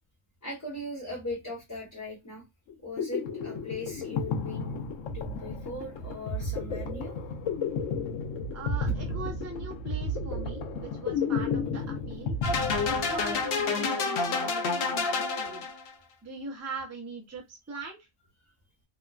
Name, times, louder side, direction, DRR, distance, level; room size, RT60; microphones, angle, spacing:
voice 1, 0.4-2.4 2.8-4.8 5.1-7.1, left 1 dB, 15° left, -4 dB, 0.9 m, -39 dB
sound 1, 2.7-13.5, left 3 dB, 85° left, 1.0 m, -32 dB
voice 2, 8.5-12.4 12.8-15.7 16.2-18.1, right 3 dB, 20° right, 1 dB, 0.5 m, -40 dB
sound 2, 12.4-15.9, left 4 dB, 60° left, 0.7 m, -28 dB
2.9 x 2.1 x 2.3 m, 0.20 s
omnidirectional pair, 1.3 m